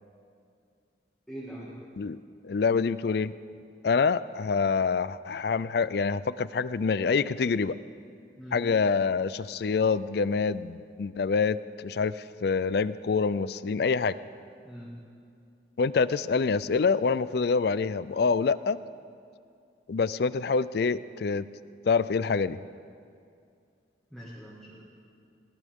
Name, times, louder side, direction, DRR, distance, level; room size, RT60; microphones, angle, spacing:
voice 1, 1.3-1.7 8.4-8.7 14.6-14.9 24.1-24.8, equal, ahead, -7 dB, 2.0 m, -42 dB
voice 2, 2.4-3.3 3.8-7.8 8.5-14.2 15.8-18.8 19.9-21.4 21.9-22.6, left 5 dB, 55° left, 17 dB, 0.4 m, -26 dB
20.5 x 19.0 x 3.7 m, 2.4 s
head